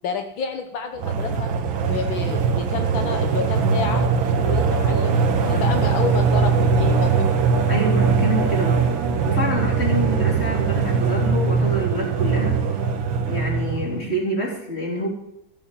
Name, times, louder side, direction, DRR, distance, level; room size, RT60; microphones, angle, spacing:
voice 1, 0.0-1.5 1.8-4.0 4.4-7.4, left 6 dB, 80° left, 5 dB, 1.8 m, -29 dB
sound 1, 1.0-14.1, right 5 dB, 80° right, 1.9 m, -21 dB
voice 2, 7.7-8.8 9.3-12.6 13.3-15.1, equal, 30° left, -2 dB, 4.1 m, -27 dB
14.5 x 7.6 x 8.4 m, 0.80 s
omnidirectional pair, 2.2 m